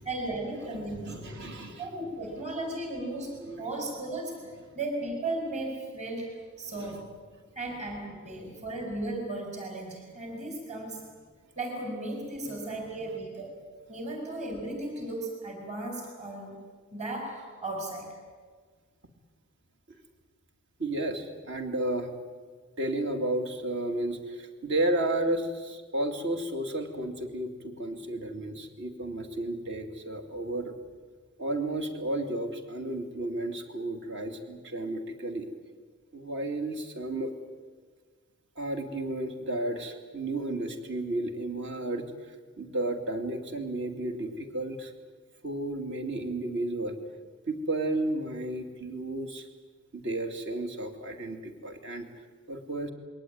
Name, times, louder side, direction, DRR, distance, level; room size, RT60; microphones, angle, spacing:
voice 1, 0.0-1.3 1.8-3.3 3.6-4.4 4.7-6.3 6.6-7.1 7.5-11.0 11.6-13.6 13.9-16.6 16.9-18.1, right 2 dB, 35° right, 2 dB, 5.0 m, -35 dB
voice 2, 0.7-1.8 3.5-3.6 6.7-7.0 20.8-22.1 22.8-30.7 31.4-35.5 36.1-37.3 38.6-42.1 42.6-44.9 45.4-47.0 47.5-49.5 49.9-52.1 52.5-52.9, right 1 dB, 60° right, 5 dB, 2.7 m, -32 dB
22.0 x 18.5 x 9.6 m, 1.5 s
head